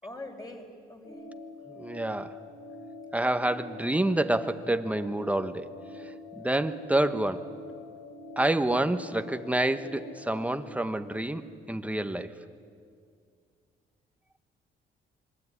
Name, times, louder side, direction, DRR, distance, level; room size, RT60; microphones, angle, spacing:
voice 1, 0.0-1.2, left 2 dB, 20° left, 3 dB, 5.0 m, -43 dB
sound 1, 1.0-10.6, left 2 dB, 85° left, 6.8 m, -45 dB
voice 2, 1.7-2.4 3.1-5.7 6.0-7.5 8.4-12.4, right 1 dB, 5° right, 10 dB, 1.4 m, -28 dB
26.0 x 22.5 x 9.8 m, 2.2 s
cardioid pair, 90°, 20 cm